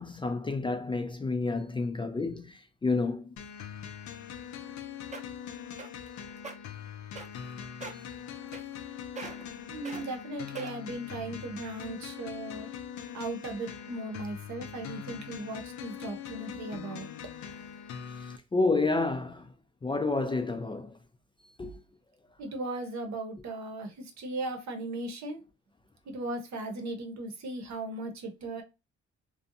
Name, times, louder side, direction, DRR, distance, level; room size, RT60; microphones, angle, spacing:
voice 1, 0.0-3.3 18.5-19.5 19.8-20.9 21.6-21.8, left 3 dB, 15° left, 0.3 m, -29 dB
sound 1, 3.4-18.4, left 9 dB, 70° left, 0.5 m, -42 dB
sound 2, 4.7-4.8 5.1-5.4 5.8-6.1 6.4-6.5 7.2-7.5 7.8-8.1 8.5-8.9 9.2-9.5 9.8-10.0 10.5-10.9 11.5-11.6, right 4 dB, 25° right, 0.6 m, -41 dB
voice 2, 9.7-12.7 13.1-17.1 22.4-25.4 26.1-28.6, right 2 dB, 65° right, 0.8 m, -37 dB
2.5 x 2.3 x 2.6 m
cardioid pair, 90°, 30 cm